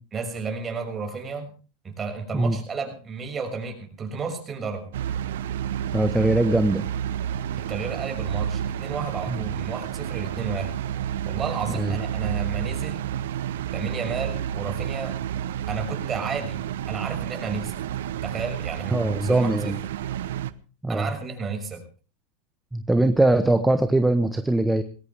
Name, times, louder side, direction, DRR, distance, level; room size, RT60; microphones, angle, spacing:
voice 1, 0.1-1.5 1.8-4.9 7.7-10.7 11.3-13.0 13.7-15.2 15.7-17.7 18.2-19.5 20.9-21.8, right 5 dB, 25° right, 3 dB, 6.1 m, -32 dB
sound 1, 4.9-20.5, right 10 dB, 80° right, 0.9 m, -30 dB
voice 2, 5.9-6.8 9.3-9.4 11.7-12.0 18.9-19.8 20.8-21.1 22.7-24.8, right 2 dB, 5° right, 8 dB, 1.3 m, -21 dB
20.5 x 17.5 x 3.5 m, 0.37 s
hypercardioid pair, 110°, 0 cm